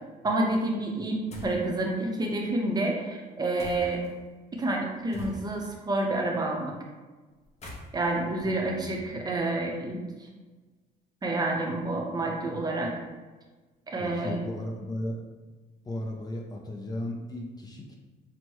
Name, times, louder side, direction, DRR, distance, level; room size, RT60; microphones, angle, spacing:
voice 1, 0.2-4.0 4.5-6.7 7.9-10.0 11.2-12.9 13.9-14.4, right 2 dB, 25° right, 0 dB, 0.7 m, -29 dB
sound 1, 1.3-1.7 3.6-4.1 5.1-5.7 7.4-9.4, left 1 dB, 40° left, 0.9 m, -44 dB
voice 2, 8.4-8.9 14.0-15.2 15.8-18.0, left 1 dB, 25° left, 0 dB, 0.5 m, -35 dB
6.2 x 2.2 x 3.0 m, 1.3 s
cardioid pair, 110°, 17 cm